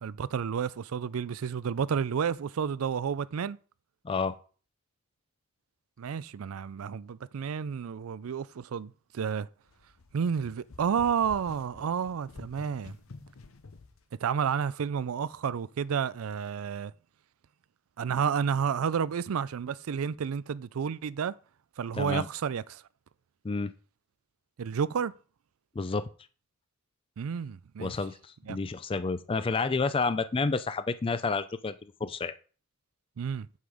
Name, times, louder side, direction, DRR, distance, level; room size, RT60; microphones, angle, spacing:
voice 1, 0.0-3.6 6.0-9.5 10.1-13.0 14.2-16.9 18.0-21.3 21.8-22.8 24.6-25.1 27.2-27.9 28.5-28.6 33.2-33.5, right 7 dB, 80° right, 0.4 m, -31 dB
voice 2, 4.0-4.4 21.9-22.3 23.4-23.7 25.8-26.1 27.8-32.3, left 4 dB, 25° left, 0.4 m, -30 dB
sound 1, 9.7-14.0, left 3 dB, 75° left, 0.8 m, -49 dB
7.8 x 5.5 x 5.0 m
head